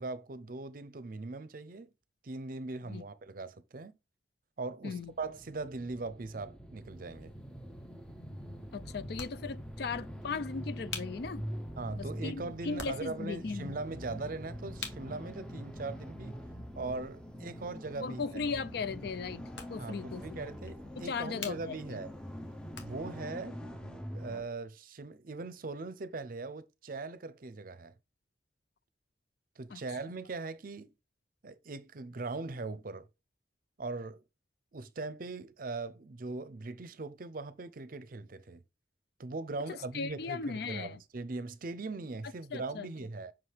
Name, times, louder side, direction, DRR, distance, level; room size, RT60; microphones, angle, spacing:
voice 1, 0.0-1.9 2.2-4.0 4.6-7.3 11.8-16.4 16.8-18.2 19.8-22.1 22.8-23.6 24.1-27.9 29.6-30.9 31.4-33.1 33.8-34.2 34.7-38.6 39.2-43.3, right 3 dB, 55° right, 0.6 m, -40 dB
sound 1, 5.0-24.4, equal, 5° left, 0.6 m, -44 dB
sound 2, 6.9-23.3, left 5 dB, 90° left, 1.4 m, -51 dB
voice 2, 8.7-11.5 12.0-13.8 18.0-20.4 21.0-21.7 29.7-29.8 39.7-41.0 42.5-42.9, left 4 dB, 65° left, 0.4 m, -37 dB
6.1 x 4.8 x 3.3 m
head